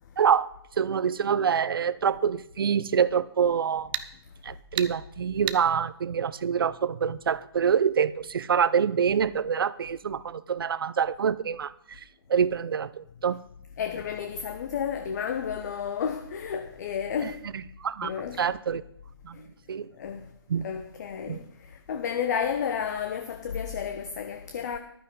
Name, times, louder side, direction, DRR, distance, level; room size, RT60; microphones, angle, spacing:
voice 1, 0.2-0.5 0.8-3.9 4.4-12.0 12.3-13.4 17.2-17.3 17.8-18.1 18.4-18.8 19.2-19.4 19.7-19.9 20.5-20.7 21.3-21.4, right 7 dB, 60° right, 0.7 m, -26 dB
sound 1, 2.7-2.8 3.9-4.1 4.8-4.9 5.5-5.6, right 13 dB, 25° right, 0.6 m, -31 dB
voice 2, 13.8-17.4 18.0-18.4 19.3-19.5 19.9-20.3 20.6-24.8, left 7 dB, 45° left, 1.0 m, -32 dB
14.5 x 12.0 x 3.9 m
figure-of-eight pair, 145°, 14 cm